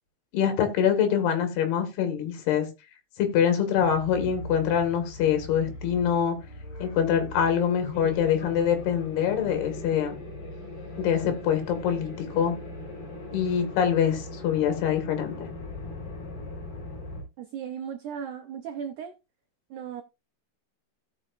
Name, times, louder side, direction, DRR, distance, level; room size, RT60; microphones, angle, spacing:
voice 1, 0.3-2.7 3.2-6.4 6.8-10.1 11.0-12.6 13.3-15.5, left 8 dB, 75° left, 3.7 m, -24 dB
sound 1, 3.8-17.2, left 2 dB, 45° left, 5.4 m, -40 dB
voice 2, 17.4-19.2 19.7-20.0, right 8 dB, 85° right, 1.7 m, -36 dB
17.0 x 6.1 x 2.4 m
omnidirectional pair, 4.6 m